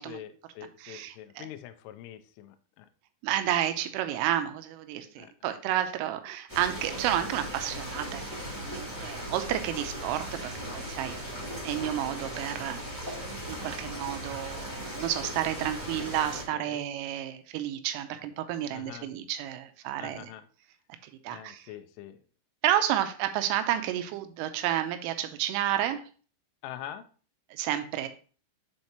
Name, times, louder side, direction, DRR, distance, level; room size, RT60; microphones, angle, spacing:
voice 1, 0.0-2.9 5.2-5.5 16.5-16.9 18.7-19.1 20.0-20.5 21.3-22.2 26.6-27.0, left 11 dB, 80° left, 8 dB, 3.0 m, -44 dB
voice 2, 0.8-1.5 3.2-11.2 11.6-13.2 13.5-20.3 21.0-21.7 22.6-26.0 27.5-28.1, right 12 dB, 85° right, 9 dB, 3.2 m, -31 dB
sound 1, 6.5-16.4, equal, 15° right, 1.0 m, -38 dB
9.5 x 4.5 x 2.9 m, 0.39 s
omnidirectional pair, 5.8 m